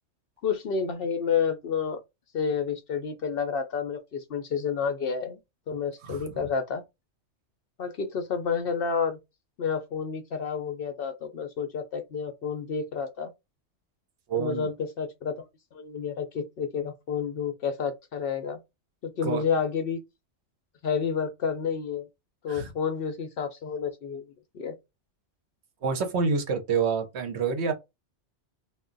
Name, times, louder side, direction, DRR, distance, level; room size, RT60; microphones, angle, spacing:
voice 1, 0.4-2.0 2.3-5.4 5.7-6.8 7.8-9.2 9.6-13.3 14.3-15.3 15.7-18.6 19.0-20.0 20.8-22.1 22.4-24.2 24.5-24.7, left 6 dB, 60° left, 0.7 m, -30 dB
voice 2, 14.3-14.7 19.2-19.4 22.5-22.7 25.8-27.7, right 5 dB, 70° right, 0.9 m, -27 dB
2.2 x 2.2 x 3.7 m
omnidirectional pair, 1.2 m